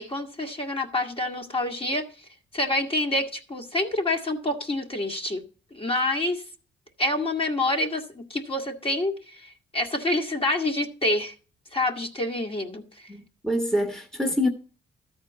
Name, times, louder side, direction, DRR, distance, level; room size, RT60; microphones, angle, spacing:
voice 1, 0.0-2.1 2.5-5.4 5.7-6.4 7.0-8.0 8.3-11.3 11.7-13.1, left 1 dB, 30° left, 1.8 m, -27 dB
voice 2, 13.1-14.5, left 1 dB, 5° left, 1.5 m, -26 dB
13.0 x 4.4 x 8.0 m
cardioid pair, 90°, 20 cm